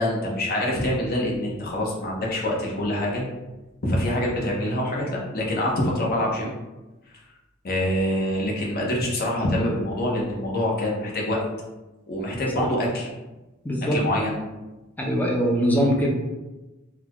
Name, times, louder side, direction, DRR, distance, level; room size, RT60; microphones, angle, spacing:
voice 1, 0.0-3.2 3.8-6.5 7.6-11.4 12.1-13.1 13.9-14.4, left 1 dB, 50° left, -3 dB, 0.9 m, -25 dB
voice 2, 13.6-14.0 15.1-16.1, equal, 10° left, -2 dB, 0.5 m, -22 dB
3.9 x 2.3 x 2.9 m, 1.1 s
head